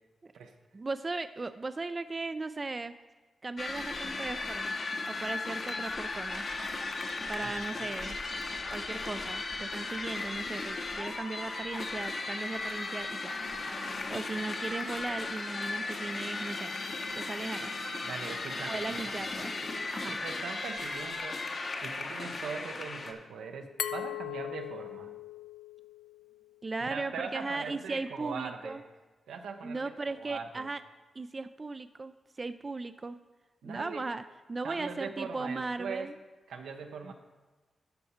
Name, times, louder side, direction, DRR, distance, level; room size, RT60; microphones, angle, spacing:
voice 1, 0.7-2.9 3.4-6.4 7.3-8.2 8.7-13.3 14.1-16.7 17.2-17.8 18.7-19.5 19.9-20.2 26.6-28.8 29.6-30.8 31.2-33.2 33.6-34.2 34.5-36.1 37.0-37.1, right 3 dB, 40° right, 11 dB, 0.3 m, -37 dB
sound 1, 3.6-23.1, left 3 dB, 55° left, 1.0 m, -36 dB
voice 2, 18.0-19.2 20.0-21.4 21.8-25.2 26.8-28.8 29.3-30.7 33.6-34.1 34.6-36.1 36.5-37.1, right 5 dB, 85° right, 5 dB, 0.8 m, -41 dB
Glass, 23.8-26.6, left 10 dB, 80° left, 0.4 m, -39 dB
11.0 x 5.5 x 4.3 m, 1.3 s
supercardioid pair, 45°, 0 cm